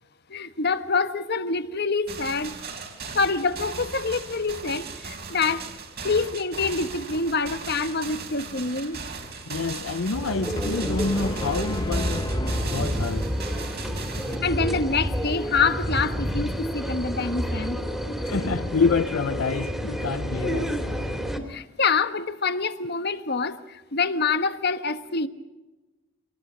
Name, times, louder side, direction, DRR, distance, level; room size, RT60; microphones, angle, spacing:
voice 1, 0.3-2.6 3.1-5.6 6.0-9.0 14.4-17.8 21.5-25.3, left 4 dB, 55° left, 1.3 m, -26 dB
sound 1, 2.1-14.4, right 5 dB, 50° right, 3.7 m, -38 dB
voice 2, 9.5-12.3 12.6-13.3 18.2-20.8, left 4 dB, 90° left, 0.7 m, -27 dB
sound 2, 10.1-21.4, equal, ahead, 2.7 m, -29 dB
sound 3, 10.6-13.6, left 1 dB, 20° left, 1.2 m, -32 dB
25.5 x 19.0 x 6.3 m
head